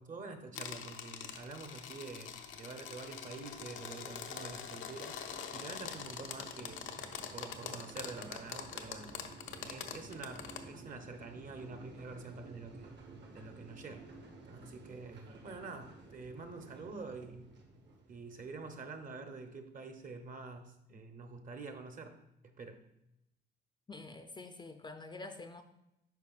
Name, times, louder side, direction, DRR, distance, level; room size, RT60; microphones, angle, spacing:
voice 1, 0.0-5.2 5.5-6.9 7.3-9.2 9.7-12.9 13.3-14.1 14.5-17.6 18.1-22.8, right 3 dB, 40° right, 6 dB, 0.8 m, -47 dB
sound 1, 0.5-10.6, left 8 dB, 75° left, 0.6 m, -44 dB
sound 2, 2.4-19.0, right 3 dB, 60° right, 1.3 m, -54 dB
voice 2, 23.9-25.6, left 3 dB, 25° left, 7 dB, 0.5 m, -47 dB
9.3 x 5.2 x 2.4 m, 0.85 s
cardioid pair, 90°, 20 cm